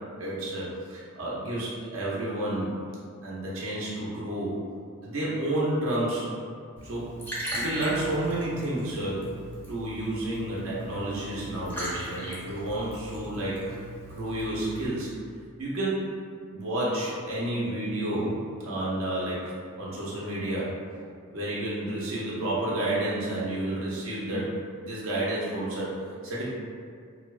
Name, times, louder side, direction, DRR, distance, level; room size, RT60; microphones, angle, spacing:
voice 1, 0.2-2.7 3.2-4.6 5.0-6.3 6.8-7.1 7.5-9.2 9.7-13.8 14.1-15.1 15.6-16.0 16.5-19.5 19.8-20.7 21.3-24.5 24.8-25.9 26.2-26.4, right 1 dB, 75° right, -7 dB, 0.5 m, -30 dB
Liquid, 6.8-14.9, equal, 10° left, 0.5 m, -38 dB
2.6 x 2.0 x 2.3 m, 2.2 s
head